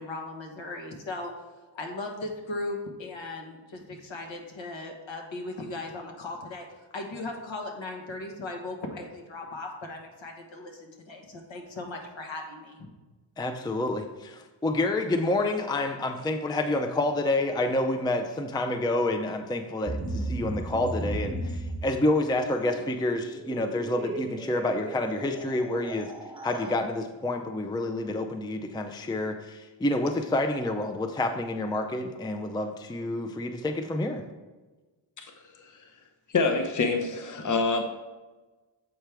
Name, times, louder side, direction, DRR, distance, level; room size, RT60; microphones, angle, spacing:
voice 1, 0.0-1.3 1.7-6.7 6.9-12.9, left 2 dB, 65° left, 2 dB, 1.3 m, -37 dB
voice 2, 13.4-26.1 26.4-34.2, left 2 dB, 10° left, 5 dB, 0.5 m, -28 dB
sound 1, 19.8-26.7, right 1 dB, 10° right, 1.2 m, -36 dB
voice 3, 36.3-37.8, left 4 dB, 40° left, 5 dB, 0.8 m, -26 dB
7.6 x 4.5 x 3.4 m, 1.2 s
cardioid pair, 55°, 50 cm